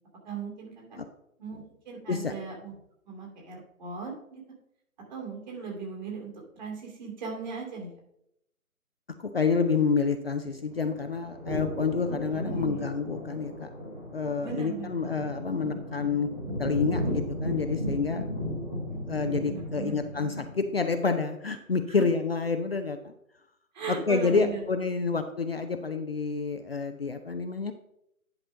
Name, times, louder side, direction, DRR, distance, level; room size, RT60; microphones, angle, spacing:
voice 1, 0.2-1.0 1.4-2.7 3.1-4.4 5.1-7.9 12.3-12.9 14.4-15.2 18.9-19.0 19.4-20.2 23.7-24.6, right 5 dB, 30° right, -1 dB, 2.8 m, -38 dB
voice 2, 9.2-13.7 14.1-16.3 16.6-18.2 19.0-23.1 23.9-27.7, left 5 dB, 45° left, 7 dB, 0.6 m, -28 dB
sound 1, 10.4-20.8, equal, 10° right, 0.8 m, -35 dB
10.5 x 4.3 x 5.3 m, 0.78 s
figure-of-eight pair, 145°, 43 cm